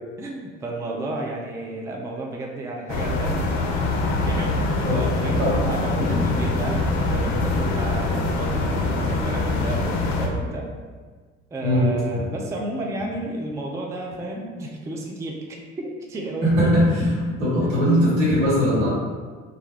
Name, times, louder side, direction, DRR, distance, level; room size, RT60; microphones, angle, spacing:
voice 1, 0.2-3.4 4.3-10.7 11.5-16.7, right 2 dB, 10° right, -1 dB, 0.3 m, -32 dB
sound 1, 2.9-10.3, left 2 dB, 50° left, 0.5 m, -24 dB
voice 2, 11.6-11.9 16.4-17.1 17.4-18.9, equal, 85° right, -8 dB, 1.3 m, -19 dB
2.4 x 2.2 x 3.4 m, 1.5 s
hypercardioid pair, 60°, 36 cm